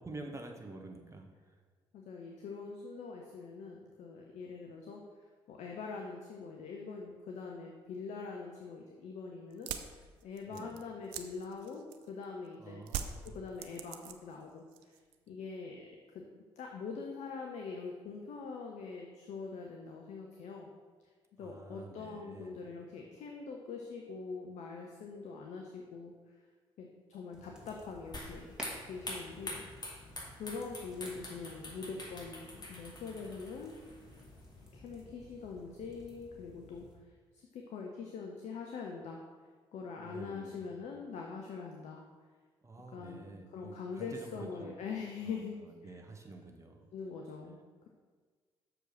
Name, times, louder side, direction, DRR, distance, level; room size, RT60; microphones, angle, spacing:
voice 1, 0.0-1.5 10.4-10.7 12.6-13.3 21.4-22.6 40.0-40.7 42.6-44.8 45.2-46.9, right 2 dB, 20° right, 3 dB, 1.3 m, -48 dB
voice 2, 1.9-5.0 5.5-12.8 13.2-15.0 15.3-16.2 16.6-20.7 21.4-26.1 26.8-29.7 30.4-33.8 34.7-36.9 37.3-39.2 39.7-42.0 42.9-45.9 46.9-47.6, left 4 dB, 55° left, 1 dB, 0.8 m, -43 dB
sound 1, 9.5-12.2 12.9-14.4 14.7-15.3, right 9 dB, 65° right, 0.5 m, -42 dB
sound 2, 27.3-36.9, equal, 5° right, 2.2 m, -54 dB
sound 3, 28.1-34.7, left 1 dB, 30° left, 2.2 m, -46 dB
6.6 x 5.0 x 6.2 m, 1.5 s
figure-of-eight pair, 45°, 14 cm